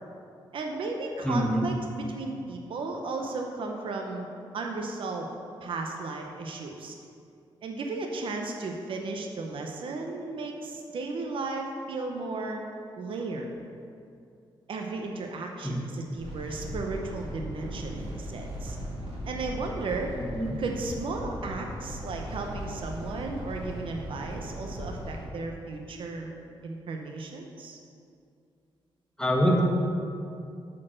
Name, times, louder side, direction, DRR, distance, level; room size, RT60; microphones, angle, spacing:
voice 1, 0.5-4.3 4.5-5.3 5.6-6.9 7.6-12.6 13.0-13.5 14.7-18.8 19.3-20.1 20.6-26.3 26.6-27.8, right 3 dB, 65° right, 2 dB, 0.8 m, -35 dB
voice 2, 1.2-1.7 15.6-15.8 20.2-20.5 29.2-29.6, equal, 5° left, -1 dB, 1.4 m, -25 dB
sound 1, 16.2-25.2, equal, 85° right, 2.0 m, -38 dB
8.3 x 4.5 x 6.3 m, 2.5 s
cardioid pair, 105°, 10 cm